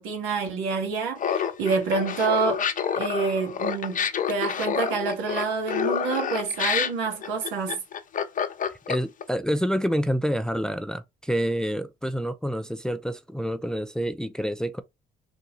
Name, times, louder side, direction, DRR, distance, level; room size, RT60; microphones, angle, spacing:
voice 1, 0.0-2.6 3.0-4.0 4.3-7.8, right 4 dB, 70° right, 1.9 m, -27 dB
Laughter, 1.2-9.2, left 7 dB, 40° left, 0.8 m, -28 dB
voice 2, 8.9-14.8, equal, 5° left, 0.5 m, -27 dB
3.8 x 2.8 x 3.8 m
hypercardioid pair, 65°, 21 cm